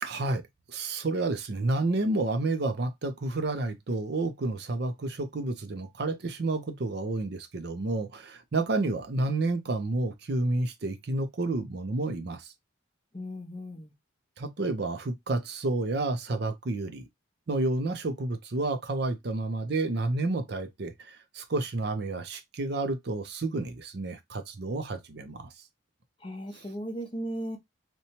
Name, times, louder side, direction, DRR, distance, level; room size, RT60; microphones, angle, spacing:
voice 1, 0.0-0.4 0.7-12.5 14.4-17.1 17.5-25.5, right 2 dB, 55° right, 0.5 m, -30 dB
voice 2, 13.1-13.9 26.2-27.6, equal, 25° left, 0.5 m, -36 dB
2.8 x 2.2 x 2.8 m
head